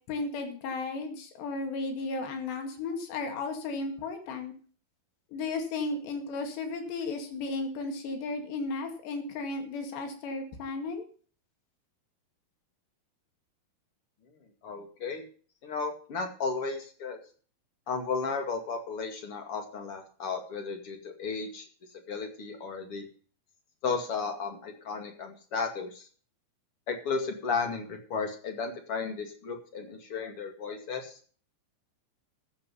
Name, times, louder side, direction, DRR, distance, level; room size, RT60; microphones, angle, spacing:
voice 1, 0.1-4.5 5.3-11.1, left 3 dB, 90° left, 5 dB, 4.4 m, -34 dB
voice 2, 14.6-15.2 15.6-17.2 17.9-21.6 22.1-23.0 23.8-26.1 26.9-31.2, left 4 dB, 40° left, 5 dB, 2.5 m, -34 dB
14.5 x 8.3 x 5.5 m, 0.42 s
omnidirectional pair, 4.8 m